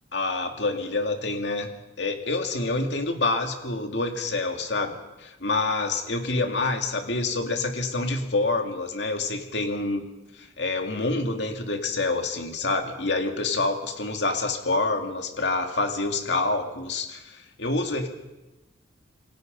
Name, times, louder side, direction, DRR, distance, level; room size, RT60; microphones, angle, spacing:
voice 1, 0.1-1.7 2.0-10.0 10.4-18.1, left 3 dB, 65° left, 4 dB, 2.5 m, -27 dB
27.5 x 23.0 x 5.4 m, 1.0 s
head